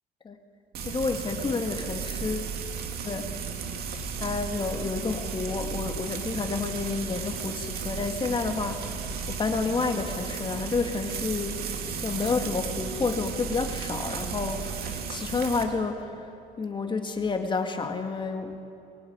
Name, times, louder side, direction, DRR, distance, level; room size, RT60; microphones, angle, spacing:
Frying (food), 0.7-15.6, right 6 dB, 65° right, 2.4 m, -34 dB
voice 1, 0.8-2.5 3.0-3.3 4.2-16.3 16.6-18.6, left 4 dB, 30° left, 5 dB, 2.1 m, -30 dB
22.0 x 17.0 x 9.5 m, 2.7 s
cardioid pair, 110°, 17 cm